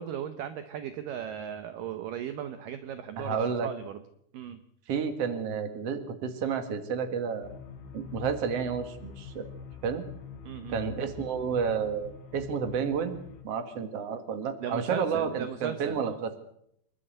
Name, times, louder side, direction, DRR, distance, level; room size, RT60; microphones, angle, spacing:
voice 1, 0.0-4.0 4.3-4.6 10.4-10.8 14.6-16.2, right 9 dB, 70° right, 9 dB, 2.4 m, -37 dB
voice 2, 3.2-3.7 4.9-7.6 7.9-9.5 9.8-10.0 10.7-13.2 13.4-16.3, right 6 dB, 45° right, 8 dB, 2.6 m, -31 dB
sound 1, 7.4-13.4, left 5 dB, 85° left, 4.7 m, -45 dB
27.5 x 12.5 x 8.0 m, 0.74 s
omnidirectional pair, 4.5 m